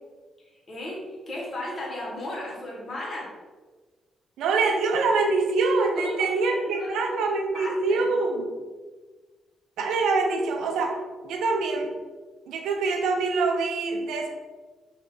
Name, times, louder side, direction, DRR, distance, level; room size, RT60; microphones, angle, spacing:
voice 1, 0.7-3.3 5.9-7.3 7.5-8.0, left 1 dB, 45° left, -3 dB, 1.3 m, -35 dB
voice 2, 4.4-8.5 9.8-11.0 11.2-11.9 12.5-14.3, right 3 dB, 75° right, 3 dB, 0.4 m, -25 dB
3.2 x 2.4 x 3.5 m, 1.3 s
hypercardioid pair, 45°, 0 cm